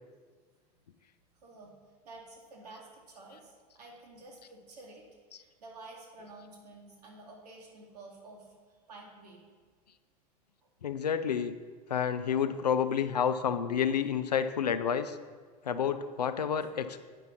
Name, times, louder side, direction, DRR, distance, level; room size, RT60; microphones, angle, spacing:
voice 1, 2.0-5.0 5.3-9.4, right 2 dB, 75° right, -3 dB, 2.2 m, -51 dB
voice 2, 10.8-11.5 11.9-15.2 15.7-17.0, left 7 dB, 85° left, 10 dB, 0.5 m, -29 dB
8.9 x 5.6 x 4.1 m, 1.5 s
figure-of-eight pair, 80°, 20 cm